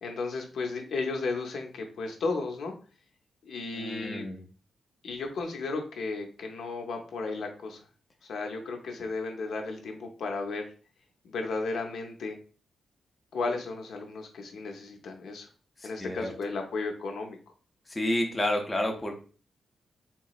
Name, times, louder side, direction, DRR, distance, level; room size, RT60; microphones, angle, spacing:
voice 1, 0.0-2.7 3.4-4.3 5.0-7.8 8.3-10.7 11.2-12.4 13.3-15.5 15.8-17.4, left 3 dB, 70° left, 3 dB, 0.6 m, -34 dB
voice 2, 3.7-4.4 15.8-16.3 17.9-19.2, left 1 dB, 15° left, 2 dB, 0.5 m, -30 dB
3.7 x 3.0 x 2.4 m, 0.38 s
wide cardioid pair, 180°, 0 cm